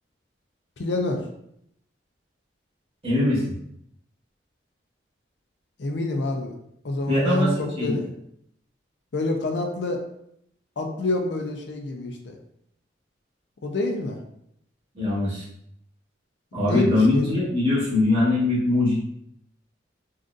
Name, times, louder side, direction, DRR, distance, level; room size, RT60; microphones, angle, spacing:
voice 1, 0.8-1.2 5.8-6.5 6.8-8.1 9.1-10.0 10.8-12.4 13.6-14.2 16.6-17.3, left 2 dB, 70° left, 3 dB, 0.5 m, -27 dB
voice 2, 3.0-3.5 7.1-8.0 14.9-15.4 16.5-19.0, left 2 dB, 30° right, -9 dB, 1.4 m, -22 dB
3.8 x 2.5 x 2.5 m, 0.74 s
head